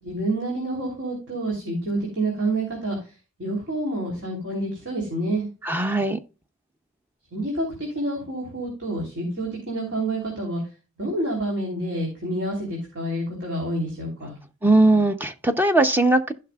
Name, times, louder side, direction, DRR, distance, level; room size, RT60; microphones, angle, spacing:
voice 1, 0.0-3.0 3.4-5.5 7.3-10.6 11.0-14.4, right 1 dB, 60° right, 3.1 m, -28 dB
voice 2, 5.6-6.2 14.6-16.3, right 2 dB, 10° right, 0.7 m, -19 dB
15.5 x 5.8 x 2.3 m
head